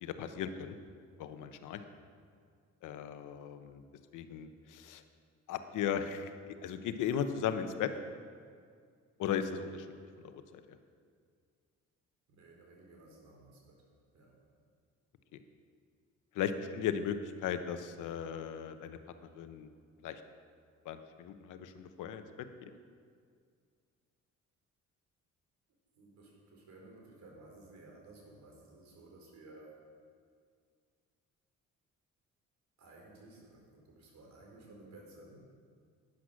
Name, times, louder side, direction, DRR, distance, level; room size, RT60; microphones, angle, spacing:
voice 1, 0.0-0.8 1.2-1.8 2.8-3.8 4.1-5.0 5.5-6.3 6.6-7.9 9.2-9.9 10.2-10.8 15.3-15.4 16.3-19.0 19.3-19.7 20.0-20.2 20.8-22.5, left 8 dB, 85° left, 9 dB, 1.0 m, -37 dB
voice 2, 12.3-14.4 25.9-29.8 32.8-35.4, right 2 dB, 65° right, -1 dB, 4.1 m, -56 dB
12.0 x 10.0 x 6.3 m, 2.1 s
cardioid pair, 90°, 30 cm